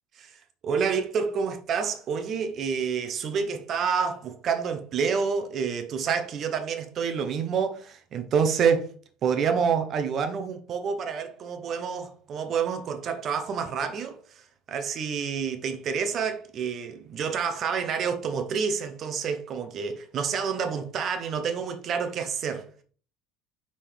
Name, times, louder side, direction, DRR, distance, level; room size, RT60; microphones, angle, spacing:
voice 1, 0.6-8.9 9.2-14.2 14.7-22.7, right 6 dB, 35° right, 0.9 m, -28 dB
5.6 x 5.3 x 3.4 m
cardioid pair, 165°, 0 cm